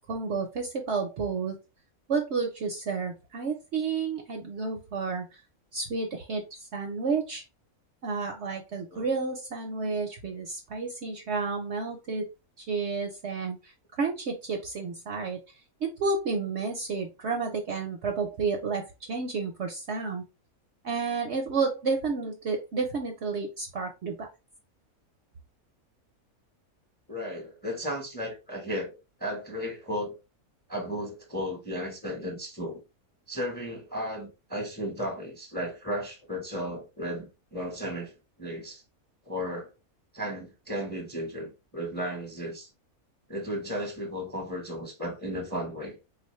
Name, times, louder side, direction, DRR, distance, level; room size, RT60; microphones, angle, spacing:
voice 1, 0.1-1.6 2.1-5.4 5.7-6.4 6.7-7.4 8.0-12.3 12.6-13.7 14.0-15.4 15.8-20.2 20.8-24.3, right 4 dB, 60° right, 0.8 m, -31 dB
voice 2, 27.1-30.1 30.7-32.8 33.3-38.1 38.4-38.8 39.3-39.7 40.1-42.7 43.3-46.0, equal, 10° left, 0.7 m, -34 dB
3.9 x 2.5 x 3.0 m
omnidirectional pair, 1.5 m